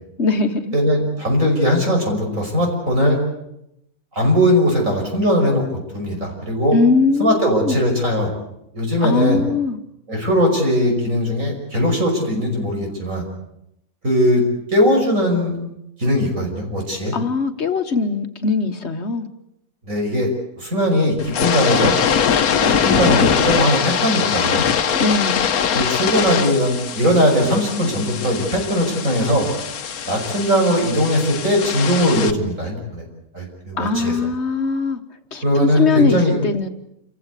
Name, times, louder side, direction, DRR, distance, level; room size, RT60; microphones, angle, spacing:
voice 1, 0.2-0.7 6.7-7.8 9.0-9.8 17.1-19.3 24.9-25.5 33.7-35.0 35.3-36.7, left 4 dB, 50° left, 8 dB, 1.5 m, -20 dB
voice 2, 0.7-3.2 4.1-5.6 5.9-6.8 7.2-8.3 8.7-9.4 10.1-13.3 14.0-14.4 14.7-15.6 16.0-17.1 19.9-20.3 20.6-22.0 22.6-24.6 25.7-29.5 30.1-33.0 33.3-34.1 35.4-36.4, equal, 65° right, 1 dB, 6.2 m, -19 dB
sound 1, 21.2-32.3, left 7 dB, 90° left, 1.5 m, -22 dB
28.0 x 15.5 x 8.3 m, 0.81 s
omnidirectional pair, 1.5 m